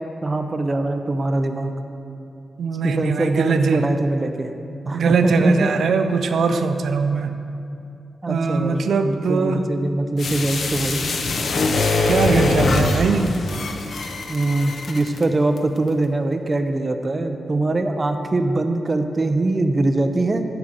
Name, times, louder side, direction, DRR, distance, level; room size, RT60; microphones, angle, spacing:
voice 1, 0.2-1.7 2.8-4.5 4.8-5.7 8.2-11.0 14.3-20.5, right 2 dB, 25° right, 6 dB, 0.5 m, -22 dB
voice 2, 2.6-3.8 4.9-7.3 8.3-9.6 12.1-13.3, right 4 dB, 85° right, 7 dB, 0.5 m, -21 dB
sound 1, 10.2-15.2 15.6-15.7, left 3 dB, 60° left, 0.8 m, -23 dB
11.5 x 5.0 x 7.4 m, 2.7 s
wide cardioid pair, 175°, 0 cm